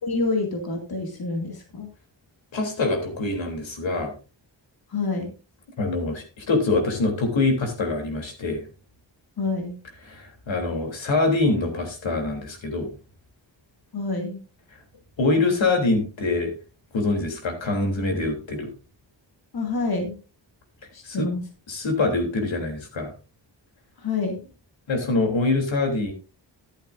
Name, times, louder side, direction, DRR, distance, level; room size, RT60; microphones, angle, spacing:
voice 1, 0.0-1.9 4.9-5.3 9.4-9.8 13.9-14.4 19.5-20.2 20.9-21.4 24.0-24.4, left 3 dB, 55° left, 2 dB, 2.3 m, -27 dB
voice 2, 2.5-4.1 5.8-8.6 10.1-12.9 15.2-16.5 16.9-18.7 21.0-21.3 21.7-23.1 24.9-26.1, left 3 dB, 85° left, 3 dB, 3.3 m, -24 dB
13.0 x 11.5 x 2.6 m, 0.33 s
wide cardioid pair, 140°, 45 cm